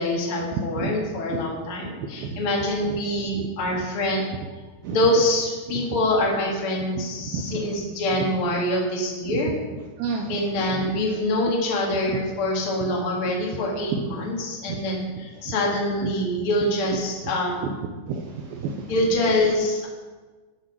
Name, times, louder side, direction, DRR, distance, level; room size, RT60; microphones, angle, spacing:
voice 1, 0.0-4.2 4.9-9.5 10.3-17.7 18.9-19.9, left 1 dB, 40° left, -2 dB, 2.1 m, -25 dB
voice 2, 0.6-0.9 1.3-1.4 2.2-2.4 4.8-5.0 7.2-7.6 9.3-9.4 10.0-10.3 10.8-10.9 12.1-12.2 14.0-14.1 14.7-14.8 15.5-15.6 16.0-16.1 18.1-18.8, right 5 dB, 85° right, 2 dB, 2.1 m, -30 dB
10.0 x 6.8 x 6.2 m, 1.3 s
omnidirectional pair, 5.2 m